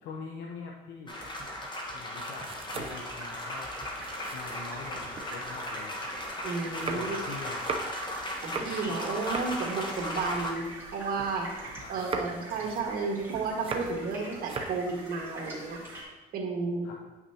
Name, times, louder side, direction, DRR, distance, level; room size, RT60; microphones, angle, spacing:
voice 1, 0.0-1.2 1.9-3.7 4.3-6.1 6.9-7.8 11.7-12.8 16.8-16.9, left 4 dB, 85° left, 0 dB, 0.8 m, -43 dB
sound 1, 1.1-10.5, left 1 dB, 25° left, 1.3 m, -37 dB
sound 2, 1.2-5.3 5.7-11.5 11.8-14.1 14.4-14.9, right 4 dB, 30° right, 0.7 m, -40 dB
sound 3, 2.9-16.0, right 2 dB, 15° right, 2.5 m, -45 dB
voice 2, 6.4-7.2 8.4-15.8 16.3-16.9, right 4 dB, 60° right, 0 dB, 1.7 m, -32 dB
9.2 x 5.8 x 2.9 m, 1.1 s
cardioid pair, 110°, 17 cm